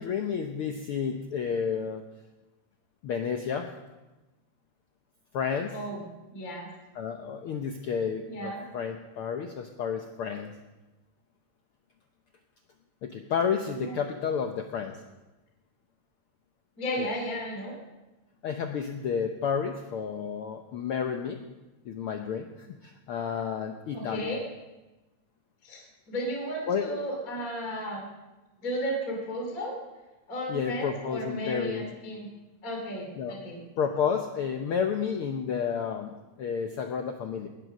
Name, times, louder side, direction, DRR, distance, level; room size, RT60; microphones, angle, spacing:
voice 1, 0.0-2.0 3.0-3.7 5.3-5.7 6.9-10.5 13.0-15.0 17.0-17.1 18.4-21.4 21.8-24.3 26.7-27.0 30.5-31.9 33.2-33.4 33.8-37.5, left 7 dB, 80° left, 5 dB, 1.2 m, -31 dB
voice 2, 6.3-6.7 8.2-8.6 13.8-14.0 16.8-17.7 23.9-24.4 25.6-28.1 28.6-29.7 30.3-32.3 32.6-33.6, equal, 25° left, 0 dB, 3.0 m, -34 dB
19.0 x 7.7 x 6.5 m, 1.1 s
omnidirectional pair, 3.6 m